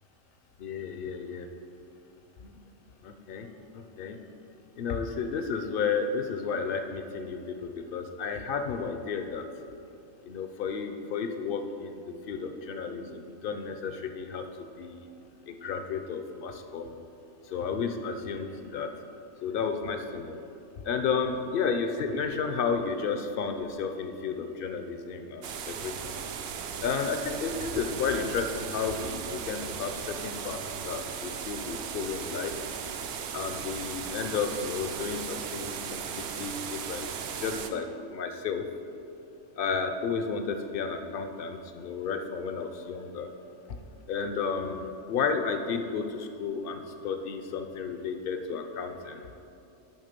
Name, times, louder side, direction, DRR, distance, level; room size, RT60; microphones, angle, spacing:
voice 1, 0.6-1.5 2.4-2.5 3.0-3.5 3.7-4.2 4.8-9.4 10.3-14.4 14.8-15.1 15.5-17.0 17.5-18.9 19.4-20.4 20.8-26.2 26.8-32.5 33.3-37.1 37.4-38.7 39.6-43.3 44.1-49.2, left 5 dB, 60° left, 7 dB, 0.6 m, -32 dB
sound 1, 25.4-37.7, right 7 dB, 65° right, 0.7 m, -37 dB
10.5 x 3.7 x 5.2 m, 2.7 s
omnidirectional pair, 1.3 m